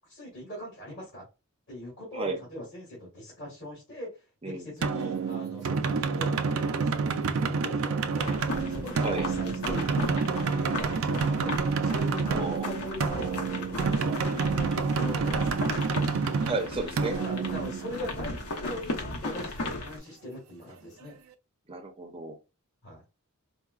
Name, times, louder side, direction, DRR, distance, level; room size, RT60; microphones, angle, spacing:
voice 1, 0.1-1.2 1.7-8.3 8.7-15.6 17.2-21.1 22.8-23.0, equal, 50° left, 1.7 m, -41 dB
sound 1, 4.8-18.4, right 5 dB, 70° right, 0.4 m, -28 dB
sound 2, 8.2-20.0, left 2 dB, 85° left, 0.9 m, -36 dB
voice 2, 12.3-12.7 16.4-17.2 21.7-22.4, right 3 dB, 25° right, 0.5 m, -32 dB
4.6 x 2.0 x 2.3 m
head